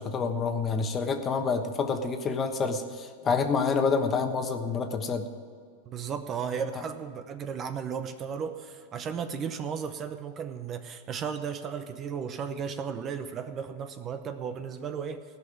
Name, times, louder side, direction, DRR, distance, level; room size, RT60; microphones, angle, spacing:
voice 1, 0.0-5.3, left 5 dB, 25° left, 6 dB, 1.2 m, -28 dB
voice 2, 5.8-15.2, right 7 dB, 30° right, 9 dB, 0.8 m, -35 dB
16.0 x 5.8 x 9.2 m, 2.1 s
hypercardioid pair, 115°, 0 cm